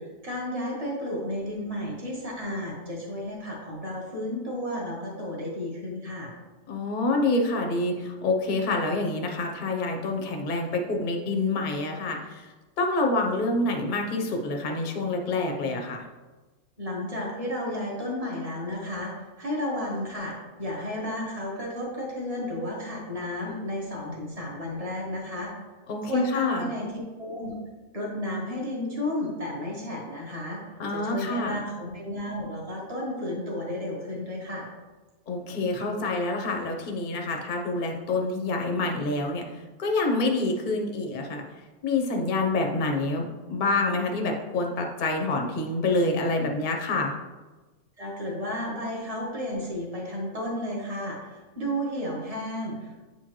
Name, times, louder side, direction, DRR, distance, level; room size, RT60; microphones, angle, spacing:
voice 1, 0.0-6.3 16.8-25.5 26.0-26.9 27.2-27.6 27.9-30.6 30.9-34.7 48.0-53.0, left 1 dB, 25° right, -3 dB, 1.4 m, -32 dB
voice 2, 6.7-16.0 25.9-26.7 30.8-31.6 35.3-41.4 41.8-47.1, left 2 dB, 40° left, 2 dB, 0.8 m, -27 dB
8.3 x 4.4 x 3.1 m, 1.2 s
omnidirectional pair, 1.6 m